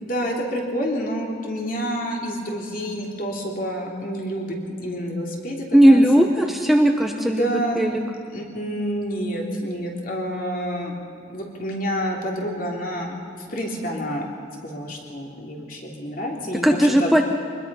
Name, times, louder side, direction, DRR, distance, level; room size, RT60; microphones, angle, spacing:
voice 1, 0.0-6.2 7.2-10.9 11.3-13.1 13.5-14.3 14.6-17.2, equal, 50° left, 0 dB, 3.2 m, -28 dB
voice 2, 5.7-7.5 7.8-8.0 16.6-17.2, equal, ahead, 3 dB, 0.8 m, -16 dB
24.0 x 20.5 x 5.6 m, 2.5 s
head